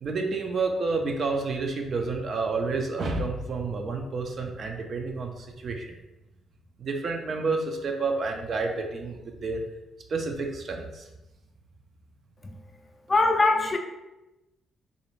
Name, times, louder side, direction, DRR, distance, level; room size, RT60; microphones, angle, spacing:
voice 1, 0.0-6.0 6.8-9.6 10.1-11.1, right 3 dB, 50° right, 3 dB, 0.4 m, -29 dB
voice 2, 13.1-13.8, left 3 dB, 25° left, 4 dB, 0.3 m, -22 dB
2.5 x 2.0 x 3.0 m, 1.0 s
cardioid pair, 90°, 0 cm